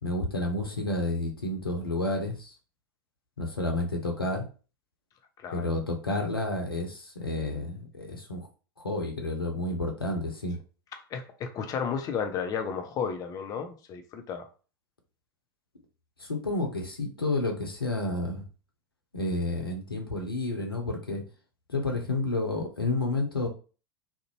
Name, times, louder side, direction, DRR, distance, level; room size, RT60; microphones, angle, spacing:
voice 1, 0.0-2.5 3.4-4.5 5.5-8.5 8.8-10.6 16.2-18.4 19.1-21.2 21.7-23.5, left 2 dB, 85° left, 2 dB, 0.7 m, -30 dB
voice 2, 11.1-14.5, left 6 dB, 30° left, 6 dB, 0.5 m, -33 dB
2.5 x 2.1 x 2.9 m, 0.36 s
figure-of-eight pair, 85°, 12 cm